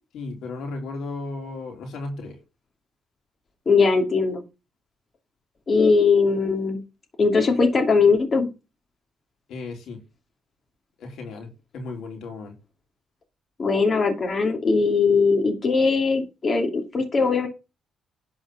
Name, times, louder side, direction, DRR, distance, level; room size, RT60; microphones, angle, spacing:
voice 1, 0.1-2.4 9.5-10.0 11.0-12.5, left 3 dB, 75° left, 3.8 m, -35 dB
voice 2, 3.7-4.4 5.7-6.8 7.2-8.5 13.6-17.5, left 4 dB, 40° left, 2.5 m, -20 dB
11.5 x 5.0 x 6.3 m
cardioid pair, 90°, 0 cm